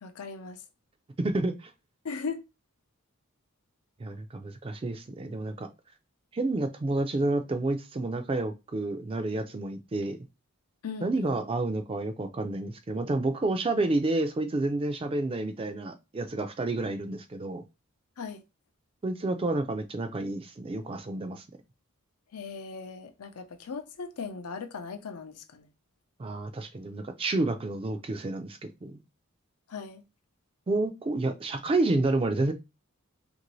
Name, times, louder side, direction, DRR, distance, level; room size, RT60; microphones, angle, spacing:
voice 1, 0.0-0.6 2.0-2.4 10.8-11.4 18.2-18.4 22.3-25.7 29.7-30.0, left 5 dB, 90° left, 0.5 m, -38 dB
voice 2, 1.2-1.7 4.0-5.7 6.3-10.2 11.0-17.6 19.0-21.4 26.2-29.0 30.7-32.5, right 2 dB, 25° right, 0.3 m, -29 dB
2.9 x 2.6 x 3.0 m
head